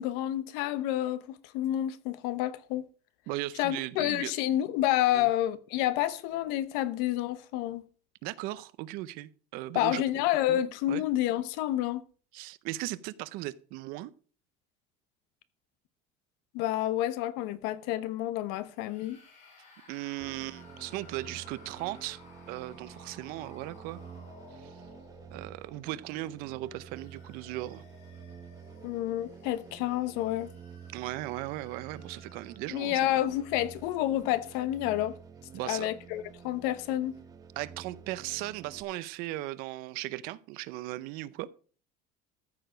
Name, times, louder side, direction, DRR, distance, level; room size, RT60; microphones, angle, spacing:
voice 1, 0.0-2.8 3.6-7.8 9.7-12.0 16.5-19.2 28.8-30.5 32.7-35.2 35.6-37.1, left 13 dB, 65° left, 1.0 m, -29 dB
voice 2, 3.3-4.3 5.1-5.3 8.2-10.0 10.5-10.6 10.9-11.0 12.3-14.1 19.9-22.2 22.5-24.0 24.6-24.7 25.3-27.8 30.9-33.0 35.5-35.9 37.6-41.5, right 17 dB, 60° right, 0.6 m, -37 dB
sound 1, 18.7-25.8 26.5-33.0, left 5 dB, 45° left, 4.2 m, -57 dB
sound 2, 20.2-38.8, right 6 dB, 20° right, 1.0 m, -50 dB
14.0 x 6.8 x 5.0 m
cardioid pair, 170°, 17 cm